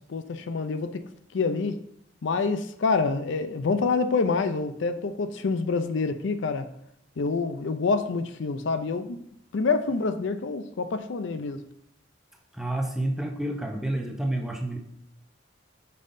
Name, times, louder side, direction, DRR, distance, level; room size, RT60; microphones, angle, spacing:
voice 1, 0.1-1.0 1.3-1.8 2.2-6.7 7.2-9.2 9.5-11.6, left 4 dB, 70° left, 9 dB, 0.5 m, -27 dB
voice 2, 12.5-14.8, right 1 dB, ahead, 1 dB, 0.7 m, -29 dB
7.5 x 5.4 x 2.6 m, 0.72 s
head